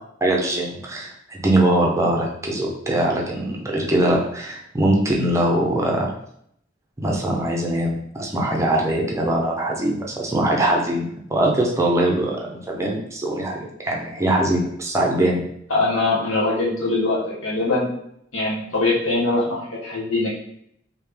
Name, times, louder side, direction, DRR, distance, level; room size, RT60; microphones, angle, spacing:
voice 1, 0.2-6.1 7.0-11.0 11.3-15.4, right 1 dB, 15° right, -1 dB, 0.5 m, -22 dB
voice 2, 15.7-17.9 18.3-20.3, left 2 dB, 80° left, -5 dB, 1.0 m, -22 dB
3.3 x 2.7 x 3.4 m, 0.70 s
head